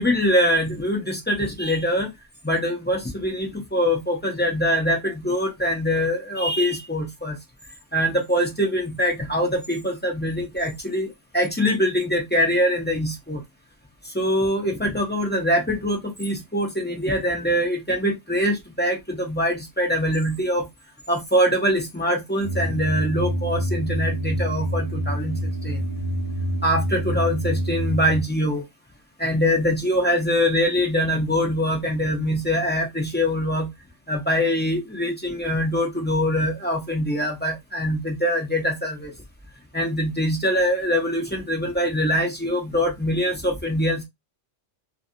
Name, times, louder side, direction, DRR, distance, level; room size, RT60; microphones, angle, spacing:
voice 1, 0.0-2.1 2.4-7.4 7.9-11.1 11.3-13.4 14.1-20.7 21.1-25.8 26.6-28.6 29.2-33.7 34.1-39.1 39.7-44.0, equal, 15° left, 0.4 m, -23 dB
sound 1, 22.4-28.2, right 1 dB, 60° left, 1.1 m, -26 dB
2.6 x 2.6 x 2.5 m
omnidirectional pair, 1.3 m